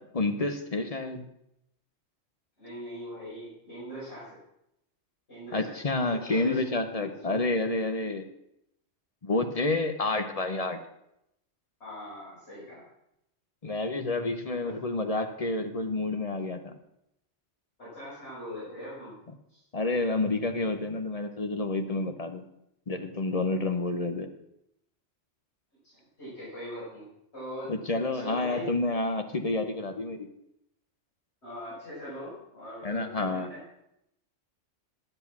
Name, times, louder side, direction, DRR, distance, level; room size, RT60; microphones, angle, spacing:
voice 1, 0.1-1.3 5.5-8.3 9.2-10.8 13.6-16.7 19.7-22.4 22.9-24.3 27.7-30.3 32.8-33.5, left 2 dB, 35° left, 7 dB, 0.8 m, -29 dB
voice 2, 2.6-4.4 5.3-5.8 6.1-7.4 11.8-12.8 14.6-14.7 17.8-19.2 19.5-19.6 25.8-27.1 27.3-27.8 28.1-28.8 31.4-33.6, equal, 65° left, -11 dB, 5.7 m, -41 dB
10.0 x 8.0 x 6.0 m, 0.81 s
omnidirectional pair, 1.3 m